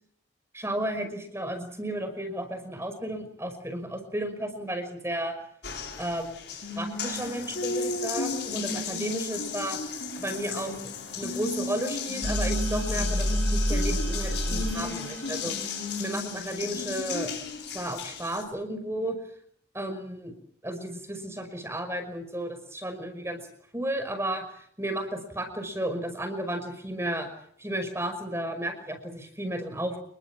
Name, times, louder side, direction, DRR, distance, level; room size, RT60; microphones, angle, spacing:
voice 1, 0.5-5.3 6.0-6.4 6.8-9.8 10.2-10.7 11.1-15.5 16.0-17.3 17.7-19.2 19.7-20.3 20.6-23.4 23.7-27.3 27.6-30.0, right 1 dB, 15° right, 8 dB, 5.5 m, -33 dB
Water tap faucet, 5.6-18.4, left 3 dB, 60° left, 7.3 m, -33 dB
sound 1, 12.2-15.8, equal, 85° right, 5.2 m, -29 dB
29.0 x 22.0 x 7.5 m, 0.65 s
head